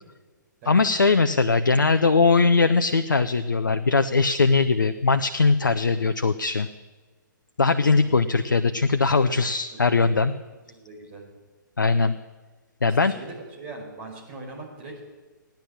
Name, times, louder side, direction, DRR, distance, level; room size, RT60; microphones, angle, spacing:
voice 1, 0.7-6.7 7.6-10.3 11.8-12.1 12.8-13.1, left 4 dB, 70° left, 10 dB, 0.7 m, -20 dB
voice 2, 9.9-10.2 10.7-11.2 12.8-14.9, right 3 dB, 30° right, 1 dB, 4.8 m, -41 dB
16.5 x 10.5 x 7.4 m, 1.3 s
figure-of-eight pair, 125°, 11 cm